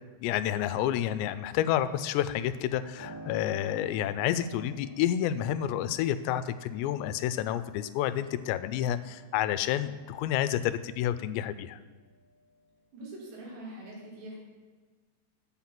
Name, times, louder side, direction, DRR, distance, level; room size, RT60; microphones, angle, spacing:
voice 1, 0.2-11.8, left 11 dB, 85° left, 13 dB, 2.7 m, -29 dB
Piano, 3.0-11.4 11.8-12.9, right 2 dB, 35° right, 3.8 m, -51 dB
voice 2, 12.9-14.4, right 1 dB, 80° right, -4 dB, 4.9 m, -43 dB
8.4 x 7.2 x 5.8 m, 1.4 s
omnidirectional pair, 4.9 m